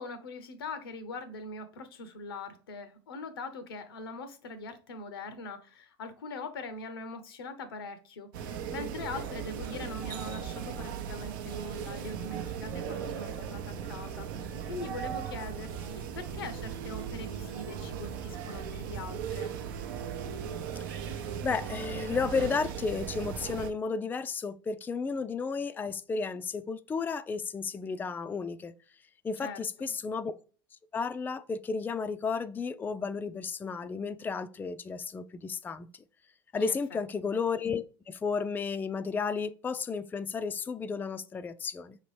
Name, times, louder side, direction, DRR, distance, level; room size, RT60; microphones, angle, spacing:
voice 1, 0.0-19.5 29.4-29.6 36.6-36.8, left 3 dB, 85° left, 0.7 m, -42 dB
sound 1, 8.3-23.7, right 8 dB, 70° right, 0.6 m, -37 dB
voice 2, 21.4-28.7 29.2-30.3 30.9-35.9 36.5-42.0, left 5 dB, 15° left, 0.3 m, -33 dB
5.2 x 2.9 x 3.1 m
hypercardioid pair, 80°, 12 cm